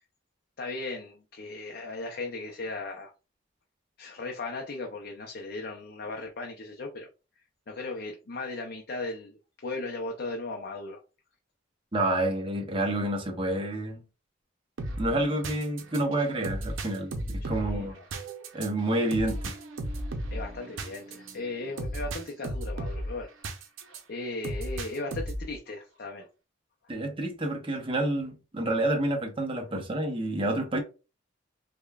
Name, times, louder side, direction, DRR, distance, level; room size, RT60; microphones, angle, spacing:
voice 1, 0.6-3.1 4.0-7.1 7.7-11.0 17.4-18.0 20.3-23.3 24.1-26.3, left 2 dB, 55° left, 0.5 m, -37 dB
voice 2, 11.9-14.0 15.0-18.0 18.5-19.4 26.9-30.8, right 1 dB, 25° right, 0.7 m, -29 dB
sound 1, 14.8-24.0 24.4-25.6, right 1 dB, 85° right, 0.6 m, -35 dB
5.0 x 2.2 x 2.3 m
head